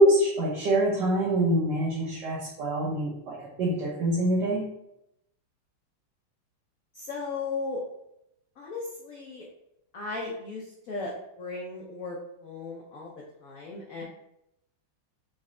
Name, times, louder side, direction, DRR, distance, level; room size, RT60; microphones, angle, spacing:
voice 1, 0.0-4.6, right 1 dB, 60° right, -5 dB, 1.3 m, -25 dB
voice 2, 6.9-7.8 8.6-9.4 9.9-12.2 12.4-13.1 13.4-14.0, left 3 dB, 75° left, -2 dB, 0.7 m, -36 dB
5.0 x 2.2 x 3.7 m, 0.81 s
omnidirectional pair, 2.3 m